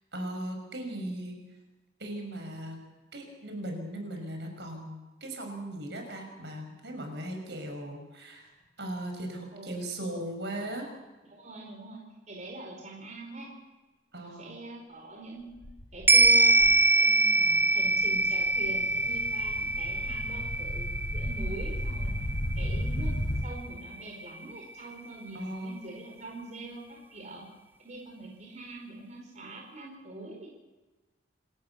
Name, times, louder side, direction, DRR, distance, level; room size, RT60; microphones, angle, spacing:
voice 1, 0.1-1.4 2.0-2.8 3.1-4.9 5.2-8.5 8.8-10.9 14.1-14.5 25.3-25.8, right 1 dB, 65° right, 4 dB, 5.8 m, -38 dB
voice 2, 11.3-13.5 14.2-15.5 15.9-22.3 22.5-23.1 23.4-27.4 27.8-30.5, right 2 dB, 40° right, -1 dB, 4.7 m, -43 dB
sound 1, 15.6-16.8 17.4-17.5 17.8-23.4, equal, 85° left, 4.7 m, -34 dB
sound 2, 16.1-24.6 25.0-25.1, right 2 dB, 10° right, 0.9 m, -25 dB
28.0 x 14.0 x 8.3 m, 1.2 s
head